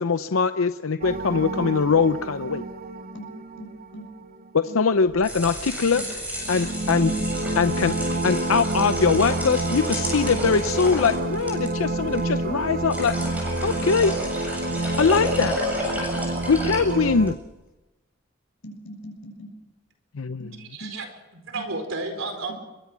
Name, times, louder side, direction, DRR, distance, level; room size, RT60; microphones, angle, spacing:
voice 1, 0.0-2.6 4.5-6.0 6.5-7.1 7.6-7.9 8.2-13.2 13.6-14.1 15.0-15.5 16.5-17.4 20.1-20.5, left 5 dB, 90° left, 11 dB, 0.7 m, -22 dB
sound 1, 1.0-4.5 6.2-17.4, right 2 dB, 45° right, 1.0 m, -29 dB
voice 2, 3.6-4.1 4.7-4.8 7.1-7.2 15.9-16.2 18.6-19.5 20.4-20.5 20.8-20.9 21.5-21.6, equal, 70° left, 2 dB, 7.1 m, -40 dB
sound 2, 5.0-17.4, equal, 10° right, 7.7 m, -33 dB
voice 3, 20.5-22.5, right 3 dB, 70° right, 6 dB, 4.5 m, -33 dB
22.5 x 22.0 x 6.2 m, 1.1 s
head